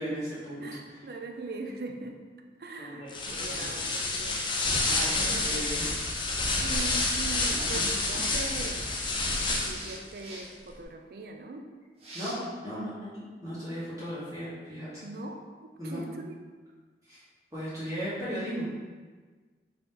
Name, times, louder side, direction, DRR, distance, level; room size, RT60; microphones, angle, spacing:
voice 1, 0.0-1.1 2.8-3.7 4.8-5.9 7.5-7.9 12.1-15.0 15.8-16.1 17.1-17.2 17.5-18.6, equal, 20° right, -11 dB, 1.2 m, -37 dB
voice 2, 0.6-2.2 2.6-4.5 5.0-5.5 6.4-8.9 9.2-11.7 15.0-16.3, right 2 dB, 55° right, 4 dB, 0.4 m, -41 dB
sound 1, 3.1-10.0, left 2 dB, 25° left, 0.4 m, -29 dB
sound 2, 7.5-7.7 8.1-8.3 9.7-10.5 12.0-12.3, right 1 dB, 35° right, 0.8 m, -43 dB
4.1 x 2.9 x 3.7 m, 1.4 s
head